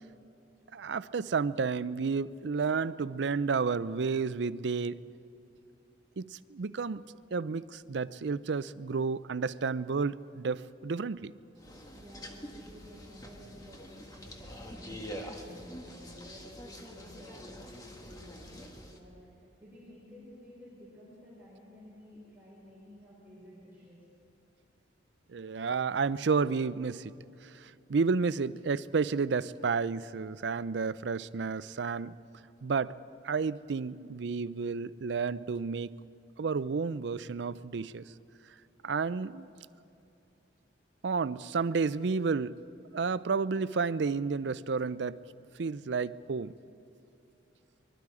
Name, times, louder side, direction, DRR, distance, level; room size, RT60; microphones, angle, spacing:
voice 1, 0.7-5.0 6.2-7.1 7.3-11.3 25.3-27.1 27.5-32.2 32.6-33.0 33.2-35.9 36.4-38.0 38.8-39.5 41.0-42.6 42.9-45.2 45.6-46.5, right 5 dB, 70° right, 16 dB, 0.5 m, -31 dB
sound 1, 11.6-19.0, equal, 20° left, 1.6 m, -46 dB
voice 2, 11.9-24.0, equal, 10° right, -9 dB, 5.2 m, -53 dB
24.0 x 22.5 x 4.9 m, 2.7 s
head